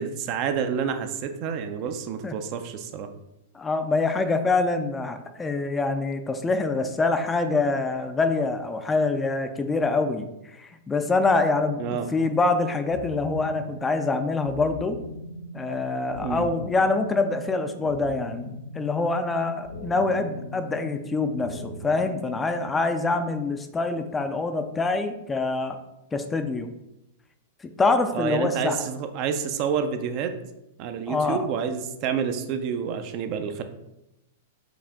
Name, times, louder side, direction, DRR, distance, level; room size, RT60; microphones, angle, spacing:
voice 1, 0.0-3.1 11.8-12.1 16.2-16.5 28.1-30.3 30.8-33.6, right 7 dB, 45° right, 7 dB, 0.5 m, -28 dB
voice 2, 3.5-10.3 10.6-11.8 12.1-15.0 15.5-25.8 26.1-26.7 27.8-28.8 31.1-31.5, left 3 dB, 15° left, 8 dB, 0.4 m, -25 dB
sound 1, 12.9-22.9, left 1 dB, 75° left, 0.5 m, -39 dB
4.8 x 2.5 x 3.5 m, 0.88 s
hypercardioid pair, 115°, 0 cm